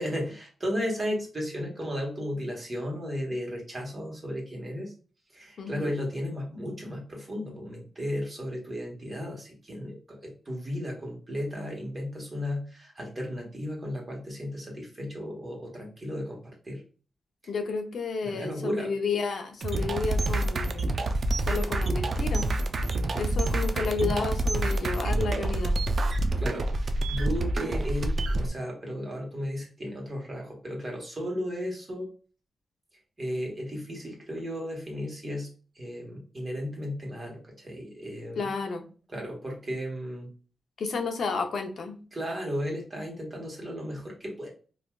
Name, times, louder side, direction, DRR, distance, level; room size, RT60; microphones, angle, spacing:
voice 1, 0.0-4.9 5.3-16.8 18.2-18.9 26.1-32.1 33.2-35.5 35.7-38.5 39.1-40.3 42.1-44.5, equal, 35° right, 0 dB, 1.3 m, -34 dB
voice 2, 5.6-5.9 17.5-20.9 21.4-22.5 23.1-25.8 38.4-38.8 40.8-42.0, left 4 dB, 70° left, 4 dB, 0.6 m, -31 dB
sound 1, 19.6-28.5, right 2 dB, 55° right, 0.4 m, -27 dB
3.3 x 2.6 x 2.3 m, 0.38 s
cardioid pair, 80°, 0 cm